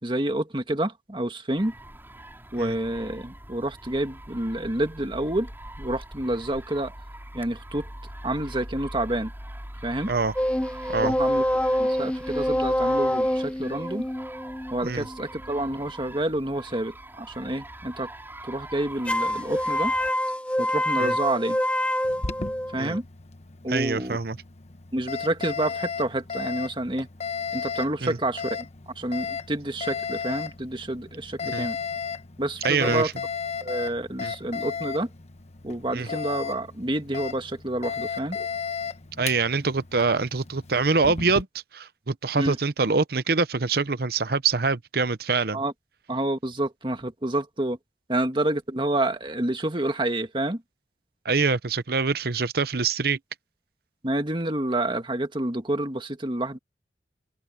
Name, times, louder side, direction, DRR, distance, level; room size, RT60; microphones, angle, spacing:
voice 1, 0.0-1.7 2.5-5.5 5.8-6.9 7.3-7.9 8.2-9.3 9.8-10.1 11.0-11.4 11.8-14.1 14.7-18.1 18.5-19.9 20.6-21.6 22.7-23.0 23.6-24.2 24.9-27.1 27.5-28.7 28.9-31.8 32.4-33.1 33.6-35.1 35.6-38.4 42.3-42.6 45.5-45.7 46.1-47.8 48.1-50.6 54.0-56.6, right 1 dB, 30° right, 1.8 m, -28 dB
sound 1, 1.6-20.1, right 1 dB, 15° right, 5.6 m, -42 dB
sound 2, 10.4-15.7 19.1-23.0, equal, 5° left, 0.8 m, -26 dB
Alarm, 22.0-41.4, left 6 dB, 40° left, 1.2 m, -35 dB
voice 2, 23.7-24.4 28.0-28.2 31.4-31.7 32.6-33.1 34.2-34.3 35.9-36.1 39.2-41.5 41.7-45.6 51.2-53.2, right 4 dB, 60° right, 0.9 m, -25 dB
open air
head